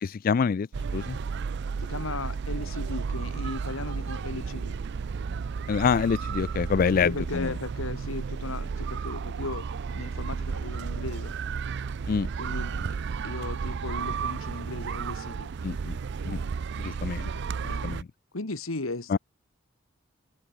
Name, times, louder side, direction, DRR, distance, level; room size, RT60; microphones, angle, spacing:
voice 1, 0.0-0.7 0.9-1.2 5.7-7.5 12.1-12.3 15.6-15.9 16.2-16.4 16.8-17.3 17.8-18.1 19.1-19.2, left 6 dB, 45° left, 0.3 m, -26 dB
sound 1, 0.7-18.0, right 5 dB, 55° right, 0.4 m, -33 dB
voice 2, 1.8-4.7 6.9-11.3 12.4-13.0 13.2-15.5 17.6-17.9 18.3-19.2, left 2 dB, 85° left, 1.9 m, -36 dB
head